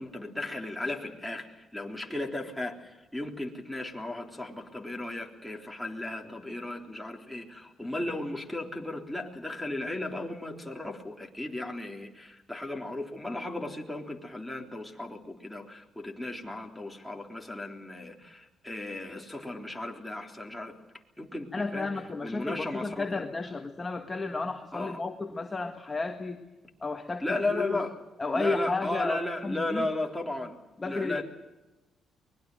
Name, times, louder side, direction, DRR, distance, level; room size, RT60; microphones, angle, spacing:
voice 1, 0.0-20.7 21.2-21.9 22.2-23.2 24.7-25.0 27.2-27.9 28.3-30.6 30.9-31.2, left 2 dB, 5° left, 1 dB, 3.6 m, -35 dB
voice 2, 21.5-26.4 26.8-27.2 27.5-27.8 28.2-29.9 30.8-31.2, left 3 dB, 25° left, 4 dB, 1.8 m, -32 dB
24.0 x 21.0 x 7.9 m, 1.1 s
cardioid pair, 90°, 0 cm